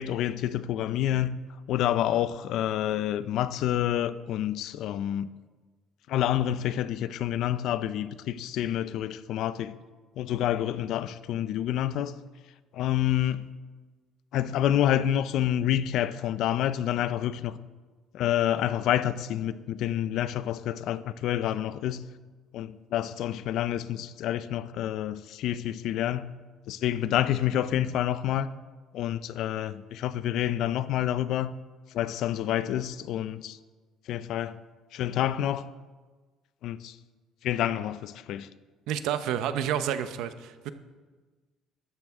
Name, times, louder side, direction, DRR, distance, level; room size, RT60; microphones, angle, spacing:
voice 1, 0.0-1.4 1.7-5.3 6.1-9.8 10.2-12.1 12.7-13.5 14.3-17.6 18.1-22.1 22.5-26.3 26.7-28.5 28.9-31.5 31.9-33.6 34.1-34.6 34.9-35.7 36.6-36.9 37.4-38.5, left 11 dB, 65° left, 0.5 m, -28 dB
voice 2, 38.9-40.7, right 9 dB, 75° right, 0.8 m, -29 dB
13.0 x 12.0 x 3.6 m
cardioid pair, 140°, 0 cm